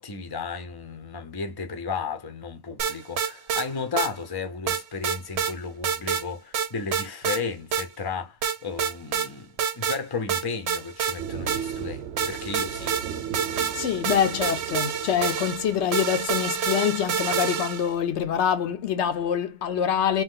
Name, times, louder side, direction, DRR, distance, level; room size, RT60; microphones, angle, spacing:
voice 1, 0.0-13.0, left 5 dB, 25° left, 0.6 m, -34 dB
sound 1, 2.8-3.7 4.0-4.1 4.7-5.5 5.8-6.2 6.5-7.4 7.7-7.9 8.4-9.3 9.6-10.0 10.3-11.8 12.2-17.9, right 7 dB, 70° right, 0.9 m, -28 dB
sound 2, 11.2-16.7, right 8 dB, 90° right, 1.0 m, -37 dB
voice 2, 13.8-20.2, left 8 dB, 75° left, 0.9 m, -25 dB
3.0 x 2.9 x 3.7 m
omnidirectional pair, 1.2 m